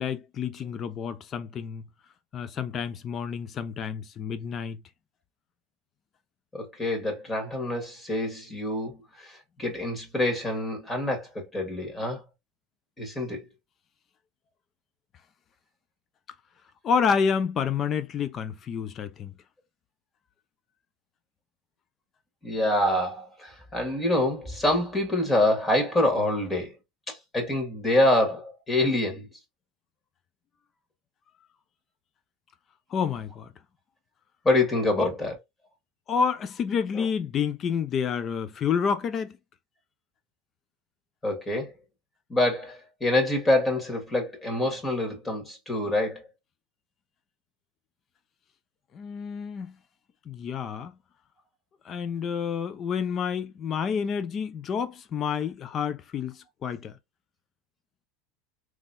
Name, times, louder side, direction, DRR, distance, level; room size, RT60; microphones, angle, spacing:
voice 1, 0.0-1.8 2.3-4.8 16.8-19.3 32.9-33.5 35.0-35.1 36.1-39.4 48.9-49.7 50.3-50.9 51.8-56.9, left 6 dB, 40° left, 0.6 m, -29 dB
voice 2, 6.5-12.2 13.0-13.4 22.4-26.8 27.1-29.3 34.4-35.4 36.9-37.0 41.2-41.7 42.3-46.2, left 1 dB, 15° left, 2.0 m, -26 dB
3.6 x 3.1 x 2.6 m
hypercardioid pair, 95°, 0 cm